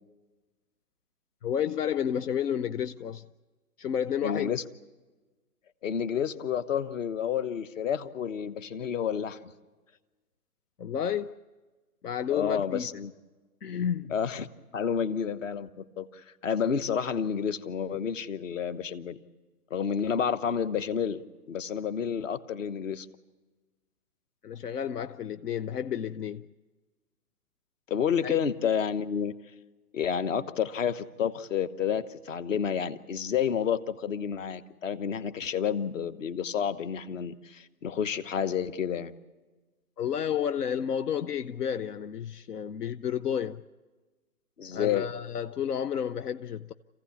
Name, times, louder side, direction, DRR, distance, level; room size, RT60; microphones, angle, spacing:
voice 1, 1.4-3.2 3.8-4.5 10.8-11.4 12.0-12.9 13.6-14.1 24.4-26.5 28.2-28.4 40.0-43.6 44.7-46.7, left 8 dB, 80° left, 0.7 m, -31 dB
voice 2, 4.2-4.6 5.8-9.5 12.3-13.1 14.1-19.2 19.7-23.1 27.9-29.3 29.9-39.1 44.6-45.1, left 7 dB, 55° left, 1.2 m, -30 dB
27.0 x 15.5 x 8.5 m
hypercardioid pair, 145°, 46 cm